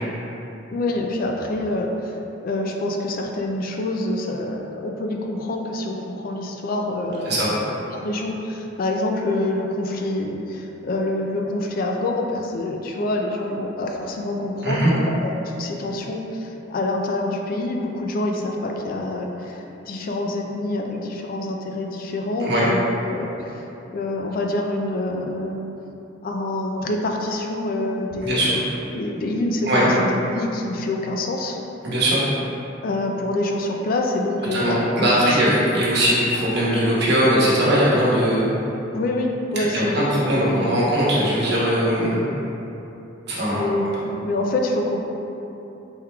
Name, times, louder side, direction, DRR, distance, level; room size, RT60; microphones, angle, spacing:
voice 1, 0.7-2.2 2.4-7.6 7.9-23.6 23.9-25.7 26.2-28.6 28.9-31.6 32.8-35.4 38.9-40.9 43.5-45.0, left 2 dB, 45° left, 1 dB, 0.3 m, -26 dB
voice 2, 28.2-28.6 29.6-29.9 31.8-32.2 34.5-38.5 39.6-42.3 43.3-43.7, equal, 60° right, -8 dB, 1.0 m, -20 dB
4.4 x 3.6 x 2.3 m, 3.0 s
head